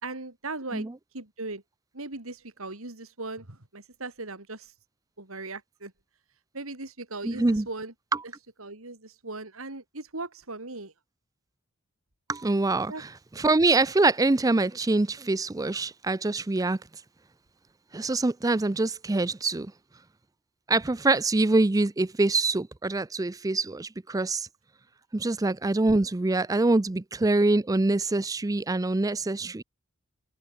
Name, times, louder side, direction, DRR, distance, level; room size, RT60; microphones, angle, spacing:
voice 1, 0.0-1.6 1.9-4.7 5.2-5.9 6.5-7.9 8.2-8.3 8.6-10.9 12.9-13.0, right 3 dB, 85° right, 3.6 m, -38 dB
voice 2, 7.2-7.7 12.3-13.1 13.4-16.8 17.9-19.7 20.7-24.5 25.1-29.6, right 2 dB, 15° right, 0.5 m, -24 dB
open air
head